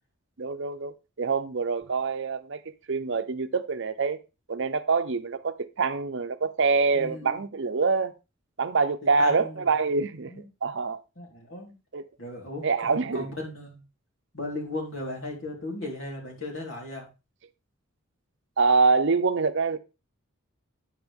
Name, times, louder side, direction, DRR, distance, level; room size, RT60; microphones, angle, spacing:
voice 1, 0.4-2.6 2.9-4.2 4.5-8.1 8.6-10.3 10.6-11.0 11.9-12.0 12.6-13.3 18.6-19.8, right 4 dB, 60° right, 0.7 m, -25 dB
voice 2, 6.9-7.4 9.0-9.6 10.2-10.4 11.2-11.7 12.2-13.8 14.3-17.1, left 2 dB, 65° left, 4.2 m, -36 dB
9.6 x 7.9 x 3.6 m
head